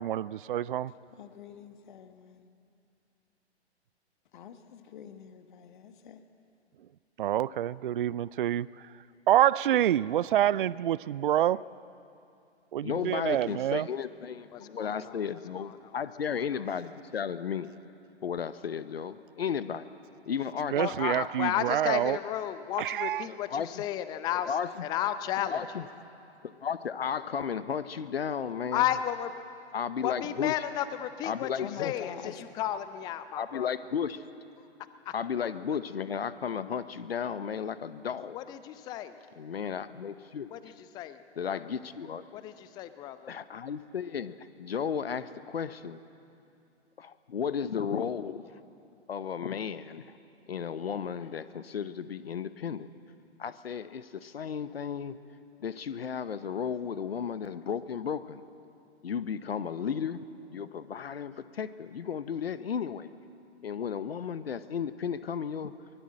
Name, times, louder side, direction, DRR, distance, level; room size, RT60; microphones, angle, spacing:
voice 1, 0.0-0.9 7.2-8.9 9.3-11.6 12.7-13.9 20.7-22.2 22.8-23.3, right 11 dB, 50° right, 21 dB, 0.4 m, -27 dB
voice 2, 1.1-2.5 4.3-6.2 31.6-32.4, left 8 dB, 45° left, 9 dB, 1.4 m, -46 dB
voice 3, 12.8-17.7 18.2-19.9 20.3-20.8 23.3-23.8 24.5-24.9 25.4-25.8 26.4-28.9 29.7-30.5 31.2-31.9 33.3-34.2 35.1-38.4 39.4-40.5 41.4-42.2 43.3-46.0 47.0-48.5 49.1-50.2 50.5-52.9 53.4-55.2 55.6-58.4 59.0-60.2 60.5-63.1 63.6-65.7, left 7 dB, 60° left, 14 dB, 0.9 m, -34 dB
voice 4, 14.5-15.2 15.6-16.0 16.3-16.4 20.7-24.5 24.8-25.6 28.7-29.3 30.0-32.1 32.6-33.7 34.8-35.1 38.3-39.1 40.5-41.2 41.4-41.6 42.3-43.3, left 11 dB, 10° left, 12 dB, 0.5 m, -33 dB
24.0 x 19.5 x 7.6 m, 2.6 s
figure-of-eight pair, 120°, 33 cm